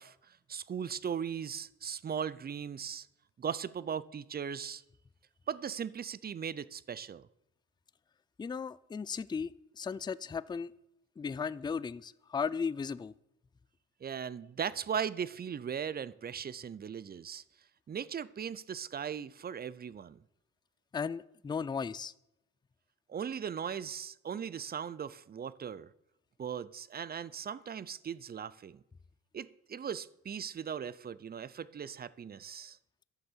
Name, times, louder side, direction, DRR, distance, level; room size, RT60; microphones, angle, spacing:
voice 1, 0.0-3.1 3.4-4.8 5.5-7.2 14.0-17.4 17.9-20.2 23.1-25.9 26.4-28.8 29.3-32.8, right 7 dB, 30° right, 0.6 m, -38 dB
voice 2, 8.4-10.7 11.2-13.1 20.9-22.1, left 6 dB, 15° left, 0.4 m, -36 dB
11.5 x 6.8 x 7.4 m
cardioid pair, 90°, 30 cm